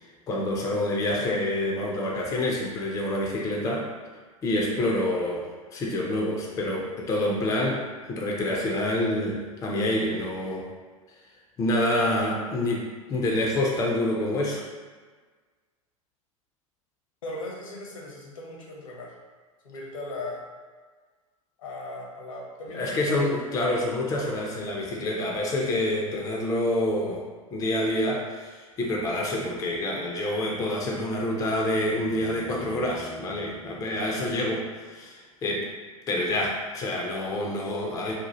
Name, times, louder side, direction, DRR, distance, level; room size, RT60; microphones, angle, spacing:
voice 1, 0.3-3.9 4.4-10.7 11.6-14.6 22.7-27.2 27.5-35.7 36.1-38.1, left 1 dB, 20° left, -2 dB, 0.4 m, -27 dB
voice 2, 17.2-19.1 19.6-20.5 21.6-23.5, left 2 dB, 65° left, -2 dB, 0.7 m, -38 dB
sound 1, 31.0-35.0 37.4-37.5, right 1 dB, 90° right, 0.5 m, -45 dB
2.7 x 2.1 x 2.9 m, 1.5 s
figure-of-eight pair, 90°, 18 cm